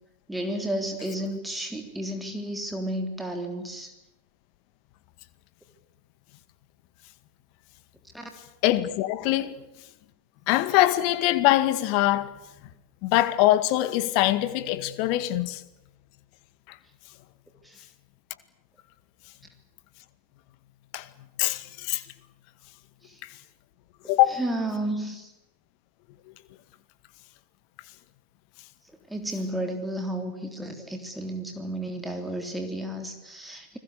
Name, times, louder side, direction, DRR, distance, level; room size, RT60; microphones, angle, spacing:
voice 1, 0.3-3.9 8.1-8.3 17.6-17.9 23.0-23.2 24.3-25.3 29.1-33.8, right 1 dB, 5° right, 3.4 m, -32 dB
voice 2, 8.6-9.6 10.5-12.3 13.0-15.6 20.9-21.1 21.4-22.0 24.1-24.4, left 15 dB, 45° left, 1.9 m, -23 dB
29.5 x 21.0 x 8.3 m
figure-of-eight pair, 90°, 0 cm